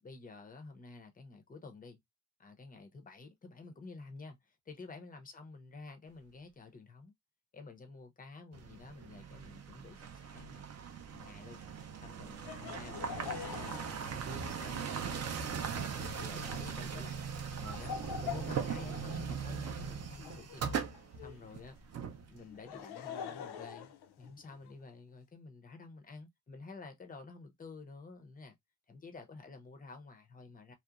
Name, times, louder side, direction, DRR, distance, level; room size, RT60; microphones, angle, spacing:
voice 1, 0.0-2.0 2.4-7.1 7.5-10.8 11.1-11.6 12.0-15.3 15.7-16.0 16.3-17.3 17.6-20.8 21.2-21.8 22.3-28.5 28.9-30.7, left 3 dB, 20° left, 0.5 m, -50 dB
sound 1, 8.5-22.7, right 6 dB, 40° right, 0.4 m, -40 dB
Laughter, 12.4-21.5 22.4-24.7, left 8 dB, 70° left, 0.5 m, -46 dB
2.8 x 2.0 x 2.3 m
wide cardioid pair, 130°, 42 cm